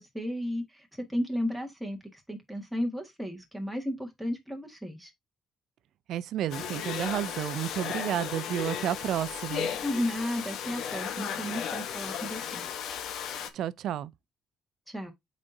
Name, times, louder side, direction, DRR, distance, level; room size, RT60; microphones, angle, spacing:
voice 1, 0.0-5.1 9.8-12.6 14.9-15.1, equal, ahead, 1.7 m, -34 dB
voice 2, 6.1-9.7 13.5-14.1, right 11 dB, 65° right, 0.5 m, -31 dB
Domestic sounds home sounds, 6.5-13.5, left 8 dB, 65° left, 1.0 m, -35 dB
8.6 x 4.2 x 2.7 m
cardioid pair, 150°, 0 cm